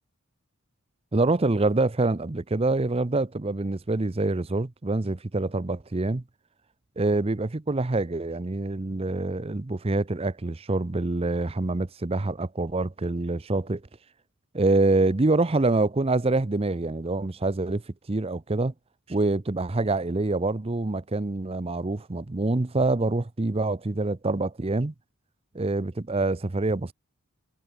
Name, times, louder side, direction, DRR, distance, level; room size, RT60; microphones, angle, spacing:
voice 1, 1.1-6.2 7.0-13.8 14.5-17.8 18.1-18.7 19.1-24.9 25.5-26.9, right 2 dB, 25° right, 0.6 m, -26 dB
head